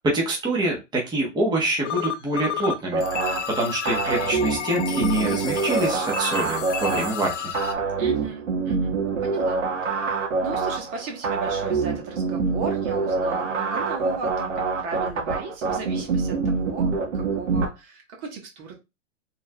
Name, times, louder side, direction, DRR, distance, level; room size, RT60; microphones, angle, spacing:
voice 1, 0.0-7.5, right 2 dB, 10° right, 1.4 m, -26 dB
sound 1, 1.8-2.7 3.0-7.7, left 9 dB, 70° left, 0.8 m, -31 dB
sound 2, 2.9-17.7, right 4 dB, 70° right, 1.6 m, -26 dB
voice 2, 8.0-9.0 9.2-18.8, right 4 dB, 35° right, 1.4 m, -36 dB
5.0 x 3.8 x 2.5 m
hypercardioid pair, 135°, 37 cm